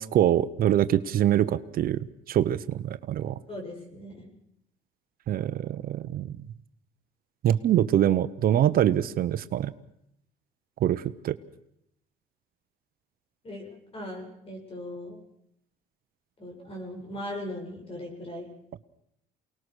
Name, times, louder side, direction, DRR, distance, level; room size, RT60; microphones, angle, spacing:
voice 1, 0.0-2.0 2.3-3.4 5.3-6.3 7.4-9.7 10.8-11.4, right 11 dB, 60° right, 13 dB, 1.0 m, -24 dB
voice 2, 3.5-4.3 13.4-15.2 16.4-18.5, left 1 dB, 35° left, 3 dB, 7.4 m, -39 dB
28.5 x 19.5 x 6.4 m, 0.78 s
cardioid pair, 110°, 17 cm